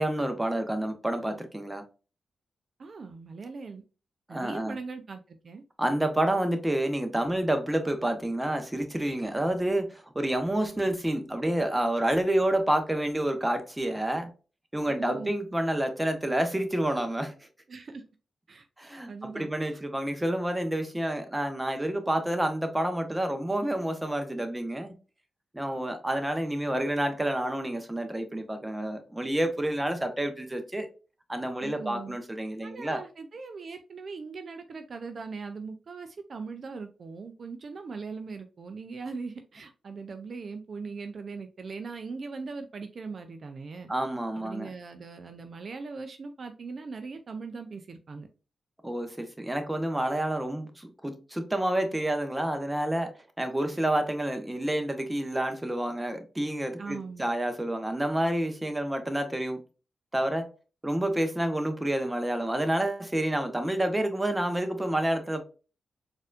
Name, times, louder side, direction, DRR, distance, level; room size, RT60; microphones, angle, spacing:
voice 1, 0.0-1.8 4.3-4.8 5.8-14.3 14.7-17.3 18.8-24.9 25.5-30.9 31.3-33.0 43.9-44.7 48.8-59.6 60.1-60.5 60.8-65.4, right 1 dB, 15° right, 0.8 m, -29 dB
voice 2, 2.8-3.8 4.3-5.6 14.9-15.3 17.7-18.0 18.5-18.7 19.1-19.8 31.6-32.2 32.6-43.9 44.4-48.3 56.8-57.3, right 4 dB, 60° right, 0.4 m, -40 dB
4.1 x 2.5 x 2.4 m
supercardioid pair, 45°, 0 cm